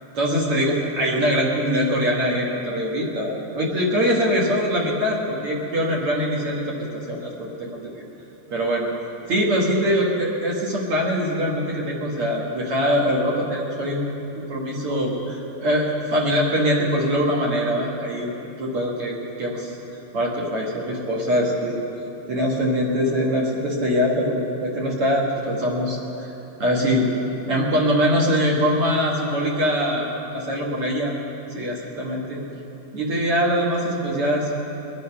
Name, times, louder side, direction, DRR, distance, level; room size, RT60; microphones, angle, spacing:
voice 1, 0.1-7.9 8.5-8.9 9.3-14.1 14.5-18.3 18.6-19.1 19.4-19.7 20.1-21.8 22.3-26.3 26.6-27.1 27.5-31.1 31.5-32.4 32.9-34.5, equal, 50° right, -2 dB, 2.0 m, -23 dB
22.5 x 9.8 x 5.8 m, 3.0 s
omnidirectional pair, 4.4 m